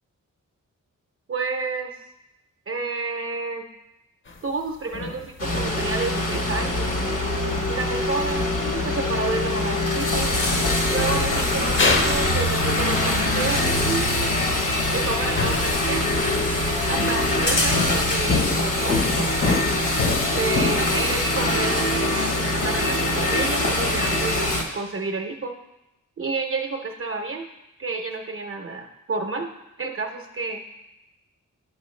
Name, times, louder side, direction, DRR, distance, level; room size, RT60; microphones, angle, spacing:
voice 1, 1.3-1.9 2.7-3.6 4.4-6.9 7.7-10.3 10.9-14.3 14.9-16.0 16.9-19.7 20.3-25.6 26.2-27.5 27.8-29.5 29.8-30.6, right 3 dB, 45° right, 2 dB, 0.6 m, -30 dB
sound 1, 4.3-4.4 4.9-5.9 6.6-7.2 8.3-8.4 8.7-8.9 9.2-9.6 10.5-10.7 11.2-11.3 11.8-12.3 12.6-12.8 14.3-14.8 15.4-16.3 17.0-17.4 17.7-20.9, left 3 dB, 40° left, 0.6 m, -27 dB
sound 2, 5.4-24.6, left 1 dB, 70° left, 1.0 m, -24 dB
sound 3, 10.1-18.3, left 1 dB, 90° left, 2.0 m, -30 dB
10.0 x 6.2 x 3.2 m, 0.93 s
wide cardioid pair, 160°, 33 cm